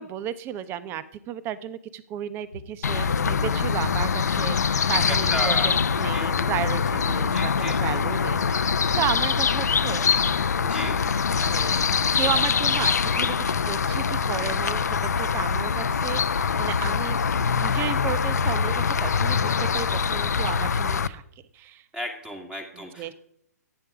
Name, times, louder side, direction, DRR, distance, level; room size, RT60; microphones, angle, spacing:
voice 1, 0.0-10.1 11.4-17.2 17.6-21.2 21.5-21.8 22.7-23.1, right 10 dB, 25° right, 15 dB, 1.0 m, -33 dB
sound 1, 2.4-2.7 3.2-3.4 3.8-4.8 5.1-5.4 5.7-6.1 6.4-7.3 7.6-7.9 8.3-8.5 9.0-9.3 9.6-11.7, equal, 85° right, 1.9 m, -41 dB
sound 2, 2.8-21.1, left 6 dB, 75° left, 0.8 m, -24 dB
voice 2, 4.9-6.5 7.3-7.8 10.6-11.0 21.9-23.1, equal, 10° right, 4 dB, 2.2 m, -34 dB
16.0 x 9.3 x 5.0 m, 0.71 s
hypercardioid pair, 130°, 9 cm